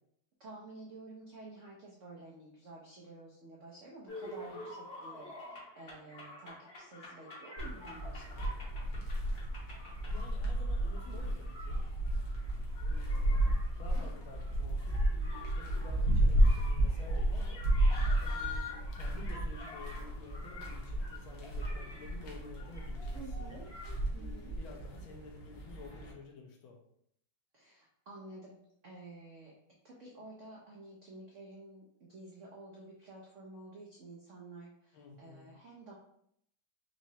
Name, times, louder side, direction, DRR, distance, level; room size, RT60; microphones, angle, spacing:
voice 1, 0.4-8.4 23.0-23.7 24.1-24.5 27.5-29.5 29.8-36.0, right 2 dB, 75° right, -4 dB, 0.6 m, -51 dB
sound 1, 4.1-24.0, left 3 dB, 45° left, 0.9 m, -48 dB
sound 2, 7.6-26.1, right 1 dB, 60° left, 1.3 m, -32 dB
voice 2, 10.1-11.8 12.9-17.6 18.2-23.6 24.2-26.8 34.9-35.5, left 4 dB, 80° left, 1 dB, 1.6 m, -52 dB
4.7 x 3.0 x 2.7 m, 0.71 s
omnidirectional pair, 2.2 m